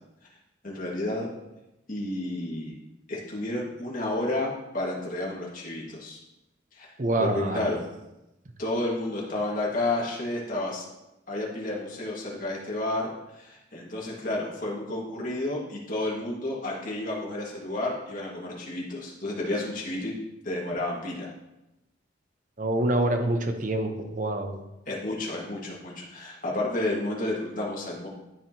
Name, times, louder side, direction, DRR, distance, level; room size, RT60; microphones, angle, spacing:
voice 1, 0.6-1.3 1.9-2.7 3.1-6.2 6.7-6.9 7.2-7.8 8.6-10.9 11.3-20.1 20.4-21.3 24.8-28.1, left 2 dB, 45° left, -4 dB, 1.8 m, -31 dB
voice 2, 7.0-7.6 22.6-24.6, right 1 dB, 40° right, 5 dB, 0.7 m, -26 dB
12.5 x 4.8 x 2.9 m, 0.94 s
head